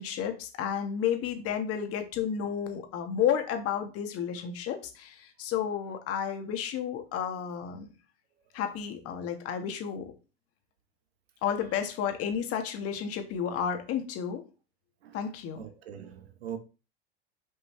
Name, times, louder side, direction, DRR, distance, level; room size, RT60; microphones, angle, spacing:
voice 1, 0.0-7.9 8.5-10.1 11.4-14.4 15.1-15.6, left 8 dB, 50° left, 1.5 m, -32 dB
voice 2, 15.6-16.6, right 9 dB, 80° right, 1.1 m, -41 dB
5.9 x 5.1 x 3.3 m
hypercardioid pair, 85°, 31 cm